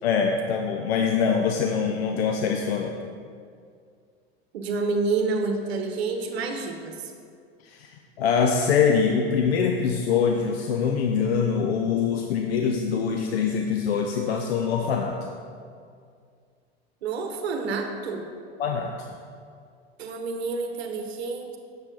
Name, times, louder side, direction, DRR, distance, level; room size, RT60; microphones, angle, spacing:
voice 1, 0.0-3.0 7.6-7.9 8.2-15.2 18.6-19.1, left 6 dB, 80° left, 3 dB, 0.6 m, -24 dB
voice 2, 4.5-7.1 17.0-18.3 20.0-21.6, right 4 dB, 85° right, 4 dB, 0.9 m, -28 dB
7.2 x 6.2 x 3.8 m, 2.2 s
hypercardioid pair, 95°, 31 cm